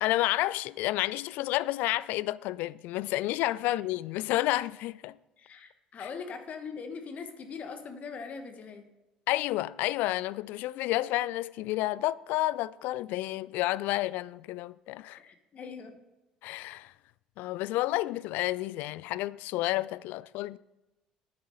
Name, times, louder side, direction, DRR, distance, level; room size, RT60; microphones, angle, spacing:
voice 1, 0.0-5.1 6.0-6.1 9.3-15.2 16.4-16.9 17.4-20.6, left 17 dB, 60° left, 0.3 m, -30 dB
voice 2, 5.4-8.9 15.2-16.0, left 5 dB, 45° left, 1.3 m, -41 dB
9.6 x 9.4 x 5.3 m
figure-of-eight pair, 55°, 3 cm